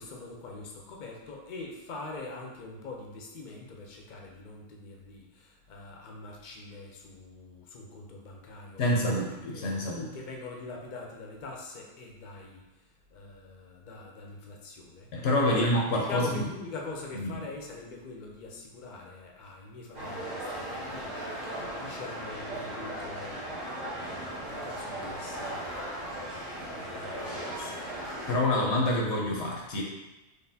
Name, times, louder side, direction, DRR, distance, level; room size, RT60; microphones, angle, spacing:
voice 1, 0.0-15.7 16.0-27.8, left 3 dB, 50° left, 0 dB, 0.7 m, -44 dB
voice 2, 8.8-10.1 15.1-16.4 17.2-17.3 28.3-29.8, left 1 dB, 80° left, -2 dB, 1.0 m, -27 dB
sound 1, 19.9-28.4, right 1 dB, 75° right, 1.4 m, -37 dB
4.0 x 3.3 x 2.7 m, 1.0 s
omnidirectional pair, 1.1 m